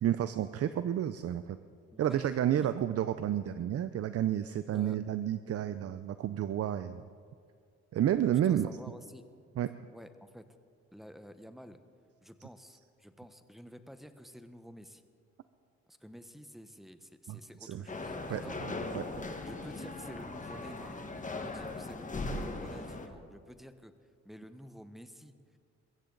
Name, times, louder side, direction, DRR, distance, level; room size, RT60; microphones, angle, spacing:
voice 1, 0.0-1.6 2.0-7.0 7.9-8.7 9.6-9.7 17.3-17.8 18.3-18.4 18.9-19.1, right 11 dB, 50° right, 12 dB, 0.6 m, -30 dB
voice 2, 1.9-2.7 4.7-5.0 8.3-9.2 9.9-10.4 10.9-11.8 12.2-15.0 15.9-18.6 19.4-23.9 24.2-25.3, equal, ahead, 9 dB, 1.0 m, -50 dB
sound 1, 17.9-23.1, left 2 dB, 25° left, 1.5 m, -39 dB
22.0 x 15.0 x 4.0 m, 2.2 s
cardioid pair, 90°, 30 cm